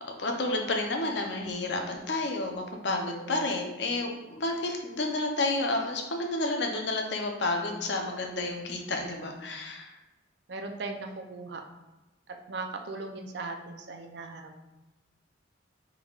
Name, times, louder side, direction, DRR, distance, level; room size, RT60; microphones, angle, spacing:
voice 1, 0.2-9.9, left 2 dB, 65° left, 3 dB, 0.6 m, -30 dB
voice 2, 10.5-11.6 12.3-14.5, right 3 dB, 60° right, 3 dB, 0.5 m, -38 dB
5.2 x 3.5 x 2.4 m, 1.1 s
head